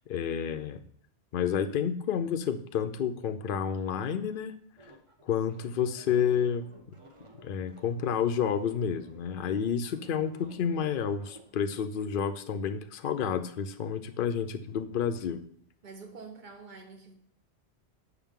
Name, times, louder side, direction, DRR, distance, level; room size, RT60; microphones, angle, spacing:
voice 1, 0.1-0.8 1.3-4.5 5.3-7.0 7.4-15.4, left 7 dB, 55° left, 0.7 m, -30 dB
sound 1, 4.8-11.5, right 2 dB, 30° right, 1.0 m, -54 dB
voice 2, 15.8-17.2, right 4 dB, 45° right, 1.2 m, -46 dB
7.1 x 6.5 x 3.6 m
omnidirectional pair, 1.2 m